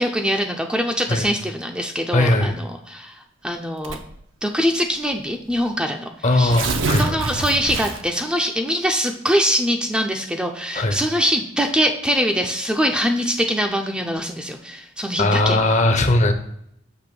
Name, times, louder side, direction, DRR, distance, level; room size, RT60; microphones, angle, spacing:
voice 1, 0.0-4.0 4.4-6.6 7.0-15.6, equal, 5° right, 3 dB, 0.5 m, -23 dB
voice 2, 2.1-2.5 6.2-7.2 10.7-11.0 15.2-16.3, left 2 dB, 40° left, 7 dB, 0.7 m, -18 dB
Tearing, 3.8-4.2 5.1-5.2 5.5-5.6 6.3-8.2, right 3 dB, 75° right, 0.7 m, -26 dB
6.9 x 3.1 x 5.9 m, 0.74 s
head